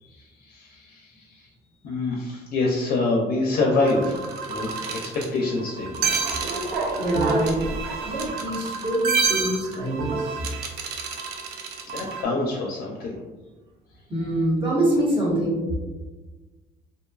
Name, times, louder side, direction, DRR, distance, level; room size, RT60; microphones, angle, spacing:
voice 1, 0.1-1.5 1.8-6.0 11.6-13.2, left 2 dB, 60° left, -1 dB, 0.5 m, -26 dB
sound 1, 3.8-12.2, right 4 dB, 70° right, 0.4 m, -28 dB
voice 2, 7.0-7.6 8.0-10.4 14.1-15.6, right 1 dB, 30° right, -6 dB, 1.1 m, -25 dB
2.6 x 2.2 x 2.3 m, 1.2 s
cardioid pair, 110°, 17 cm